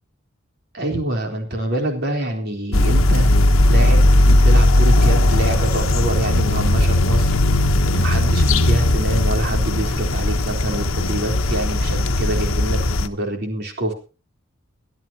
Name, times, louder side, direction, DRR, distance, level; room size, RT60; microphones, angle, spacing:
voice 1, 0.7-3.3 3.7-7.3 7.9-13.9, right 1 dB, 50° right, 2 dB, 3.8 m, -25 dB
sound 1, 2.7-13.1, left 1 dB, 85° left, 1.2 m, -17 dB
23.0 x 12.5 x 2.9 m, 0.34 s
head